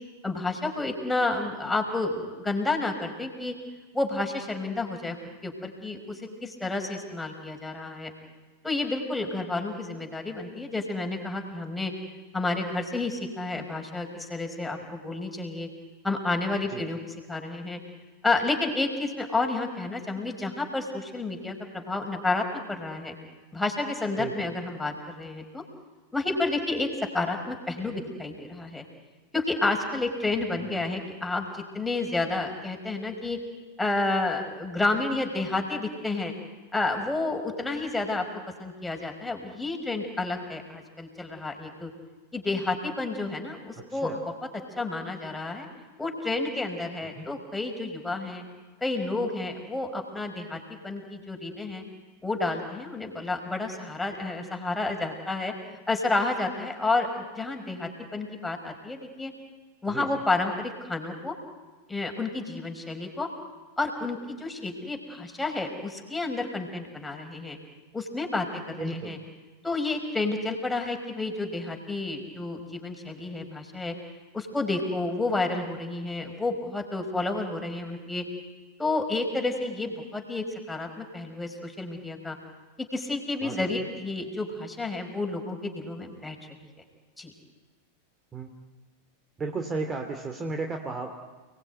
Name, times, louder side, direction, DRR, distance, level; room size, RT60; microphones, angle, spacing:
voice 1, 0.2-3.5 3.9-5.2 5.4-8.1 8.6-11.9 12.3-15.7 16.0-17.8 18.2-23.1 23.5-25.6 26.1-26.9 27.1-28.8 29.3-31.5 31.7-33.4 33.8-36.3 36.7-38.3 38.6-41.9 42.3-44.1 44.8-45.7 46.0-48.4 48.8-51.8 52.2-55.5 55.9-59.3 59.8-61.3 61.9-63.3 63.8-67.6 67.9-69.2 69.6-73.9 74.3-78.2 78.8-82.4 82.8-86.4 87.2-87.3, left 2 dB, 5° left, 3 dB, 5.3 m, -30 dB
voice 2, 24.2-24.5 30.6-30.8 43.9-44.2 47.2-47.3 59.9-60.1 68.8-69.2 83.4-83.9 88.3-88.5 89.4-91.2, right 3 dB, 20° right, 4 dB, 2.6 m, -34 dB
29.5 x 20.5 x 9.5 m, 1.3 s
figure-of-eight pair, 90°, 0 cm